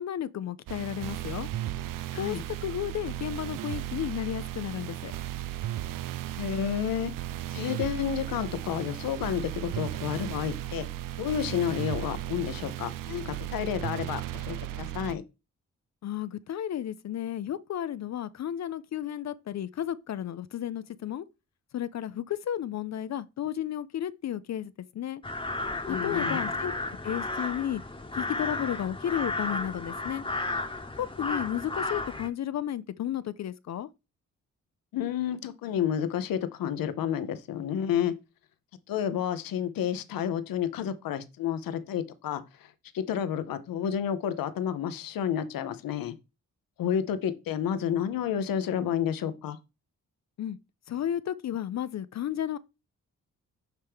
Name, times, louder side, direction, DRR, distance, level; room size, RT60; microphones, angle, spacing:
voice 1, 0.0-1.5 2.2-5.1 16.0-21.3 21.7-25.2 26.0-26.7 27.0-27.8 28.1-30.2 31.0-33.9 50.4-50.6 50.9-52.6, left 10 dB, 50° left, 0.5 m, -33 dB
sound 1, 0.7-15.2, right 14 dB, 70° right, 0.5 m, -35 dB
voice 2, 2.1-2.4 6.4-7.1 7.5-10.9 11.2-15.2 25.9-26.5 34.9-38.1 38.9-42.4 42.9-46.1 46.8-49.6, left 9 dB, 80° left, 0.8 m, -30 dB
sound 2, 25.2-32.3, left 2 dB, 15° left, 1.1 m, -33 dB
9.0 x 3.2 x 3.5 m
supercardioid pair, 45°, 34 cm